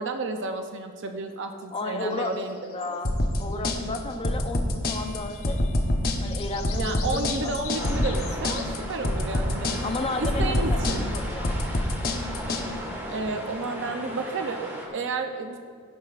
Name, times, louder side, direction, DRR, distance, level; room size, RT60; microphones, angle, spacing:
voice 1, 0.0-2.8 6.7-9.8 10.2-11.1 13.1-15.6, right 3 dB, 55° right, 5 dB, 0.6 m, -31 dB
voice 2, 1.7-5.6 6.2-7.5 7.8-7.9 9.8-10.8 11.1-11.6, left 2 dB, 25° left, 5 dB, 0.6 m, -33 dB
sound 1, 2.1-3.7 5.2-5.9 6.1-8.7, left 7 dB, 70° left, 1.1 m, -42 dB
sound 2, 3.0-12.6, left 1 dB, 45° left, 1.0 m, -26 dB
sound 3, 7.7-14.9, equal, 10° right, 1.5 m, -37 dB
16.5 x 8.7 x 2.5 m, 2.2 s
head